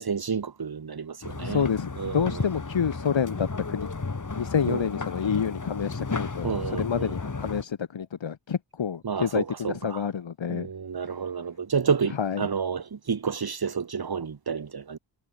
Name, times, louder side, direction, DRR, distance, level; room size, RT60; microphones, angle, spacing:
voice 1, 0.0-1.7 2.0-2.3 4.7-4.9 6.4-7.1 9.0-10.0 10.5-15.0, right 6 dB, 50° right, 2.2 m, -30 dB
sound 1, 1.2-7.6, left 4 dB, 40° left, 5.7 m, -33 dB
voice 2, 1.4-3.9 4.3-10.7 12.1-12.5, left 7 dB, 75° left, 3.6 m, -28 dB
cardioid pair, 55°, 46 cm